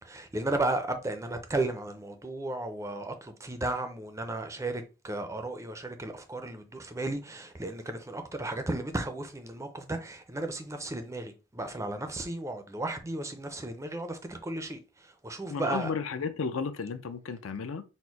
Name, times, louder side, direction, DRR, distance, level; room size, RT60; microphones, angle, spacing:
voice 1, 0.0-15.9, right 2 dB, 15° right, 0.5 m, -34 dB
voice 2, 15.5-17.8, left 5 dB, 65° left, 0.5 m, -33 dB
4.3 x 2.1 x 4.5 m
head